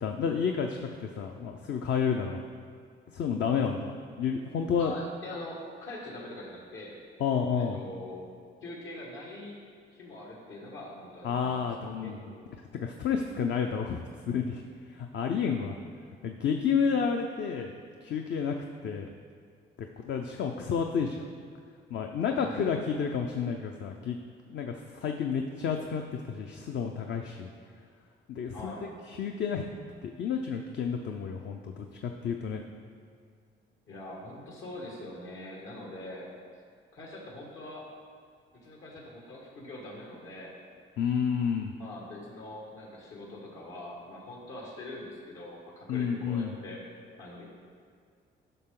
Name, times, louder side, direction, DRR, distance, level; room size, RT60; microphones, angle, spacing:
voice 1, 0.0-2.4 3.1-3.9 4.2-4.9 7.2-7.8 11.2-12.2 12.8-14.6 14.9-15.8 16.2-17.7 18.0-18.6 18.8-19.1 20.0-21.2 21.9-24.2 24.5-27.5 28.3-28.7 29.1-29.6 30.0-32.6 41.0-41.7 45.9-46.5, left 6 dB, 65° left, 3 dB, 0.6 m, -30 dB
voice 2, 4.8-7.0 7.6-8.2 8.6-9.6 9.9-12.1 22.4-22.8 28.5-28.9 33.9-36.3 36.9-37.9 38.5-40.5 41.8-46.8 47.2-47.4, left 1 dB, 80° left, -3 dB, 1.9 m, -43 dB
11.0 x 5.9 x 3.8 m, 2.2 s
cardioid pair, 90°, 20 cm